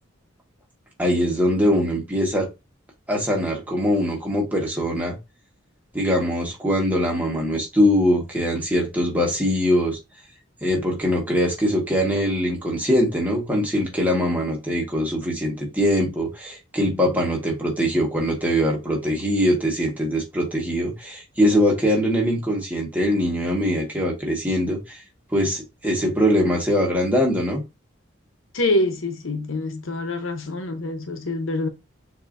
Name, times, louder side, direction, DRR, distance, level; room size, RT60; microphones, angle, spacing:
voice 1, 1.0-2.5 3.1-5.2 5.9-10.0 10.6-25.0 25.3-27.6, equal, 10° right, 1.5 m, -22 dB
voice 2, 28.5-31.7, left 1 dB, 90° left, 0.9 m, -25 dB
6.7 x 2.8 x 2.6 m
head